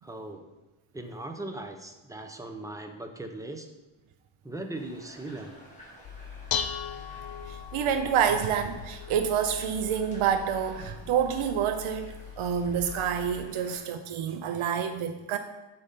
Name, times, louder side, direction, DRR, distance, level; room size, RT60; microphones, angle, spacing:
voice 1, 0.0-0.5 0.9-3.7 4.4-5.5, right 2 dB, 5° right, 5 dB, 0.5 m, -39 dB
sound 1, 4.7-13.8, equal, 15° left, 1.9 m, -52 dB
Dishes pots and pans, 6.0-13.4, left 8 dB, 70° left, 0.5 m, -39 dB
voice 2, 7.5-15.4, right 8 dB, 80° right, 7 dB, 0.6 m, -28 dB
8.2 x 3.8 x 5.2 m, 1.1 s
wide cardioid pair, 150°, 49 cm